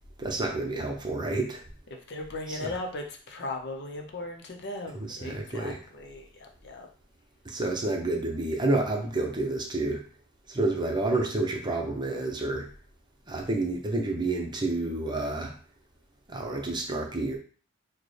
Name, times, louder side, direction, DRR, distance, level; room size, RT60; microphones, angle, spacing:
voice 1, 0.2-1.6 2.5-2.6 5.1-5.8 7.4-10.0 10.5-12.7 13.3-15.5 16.3-17.4, right 2 dB, 25° right, 1 dB, 0.8 m, -29 dB
voice 2, 2.1-6.9, left 2 dB, 60° left, 3 dB, 0.7 m, -37 dB
6.4 x 2.2 x 3.3 m, 0.41 s
head